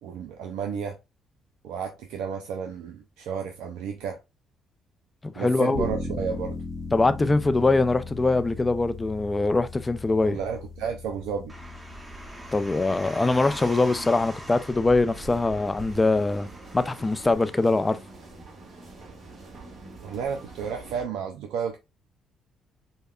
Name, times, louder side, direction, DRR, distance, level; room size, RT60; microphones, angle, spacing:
voice 1, 0.0-1.0 1.6-4.2 5.4-6.6 10.2-11.5 20.0-21.8, right 7 dB, 85° right, 0.5 m, -32 dB
voice 2, 5.2-5.8 6.9-10.4 12.5-16.5 16.7-18.0, left 3 dB, 25° left, 0.5 m, -23 dB
sound 1, 5.7-16.5, left 3 dB, 60° left, 0.9 m, -39 dB
Car, 11.5-17.3, right 1 dB, 20° right, 1.1 m, -41 dB
sound 2, 15.0-21.1, right 3 dB, 55° right, 1.8 m, -46 dB
5.4 x 2.1 x 2.3 m
supercardioid pair, 75°, 0 cm